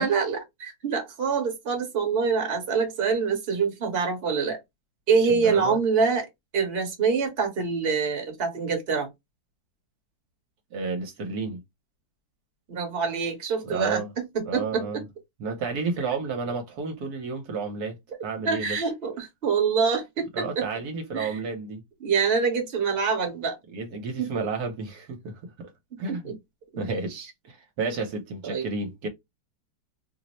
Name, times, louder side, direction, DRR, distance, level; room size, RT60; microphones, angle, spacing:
voice 1, 0.0-4.6 5.1-6.3 6.5-9.1 12.7-15.0 18.4-20.7 21.1-21.4 22.0-23.6 24.2-24.3 26.1-26.4 26.7-26.8 28.4-28.7, right 5 dB, 40° right, 1.1 m, -25 dB
voice 2, 5.3-5.8 10.7-11.6 13.6-14.1 14.5-15.0 15.4-18.8 20.3-21.8 23.7-25.7 26.0-26.3 26.8-29.1, right 4 dB, 70° right, 1.2 m, -31 dB
3.0 x 2.0 x 4.0 m
omnidirectional pair, 1.9 m